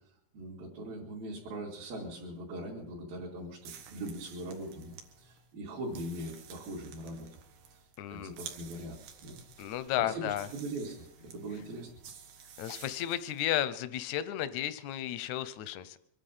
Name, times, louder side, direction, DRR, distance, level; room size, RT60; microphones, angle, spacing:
voice 1, 0.3-7.3 8.1-9.4 9.7-11.9, right 1 dB, 75° right, -6 dB, 4.3 m, -41 dB
sound 1, 3.6-13.5, right 7 dB, 90° right, 3.4 m, -52 dB
voice 2, 8.0-8.3 9.6-10.5 12.6-16.0, left 12 dB, 80° left, 13 dB, 1.7 m, -33 dB
24.5 x 10.5 x 5.6 m, 0.77 s
omnidirectional pair, 4.3 m